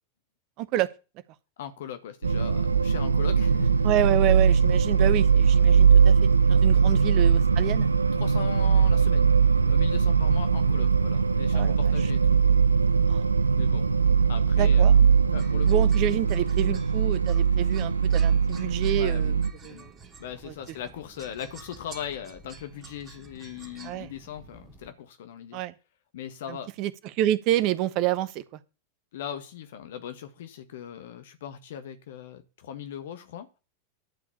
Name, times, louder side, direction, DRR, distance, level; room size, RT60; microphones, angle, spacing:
voice 1, 0.6-0.9 3.8-6.1 6.5-7.9 11.5-11.8 13.1-13.2 14.6-14.9 15.7-19.3 19.6-19.9 20.5-20.6 23.8-24.1 25.5-25.7 26.5-28.4, right 13 dB, 40° right, 1.2 m, -28 dB
voice 2, 1.6-4.0 6.9-7.3 8.1-9.3 9.6-12.4 13.6-13.9 14.3-15.0 15.3-15.7 18.9-19.9 20.2-25.6 26.1-26.7 29.1-33.5, left 9 dB, 55° left, 1.5 m, -39 dB
sound 1, 2.2-19.5, right 6 dB, 80° right, 0.6 m, -21 dB
sound 2, 15.4-24.9, right 4 dB, 20° right, 2.8 m, -50 dB
11.5 x 5.0 x 8.5 m
figure-of-eight pair, 90°, 0 cm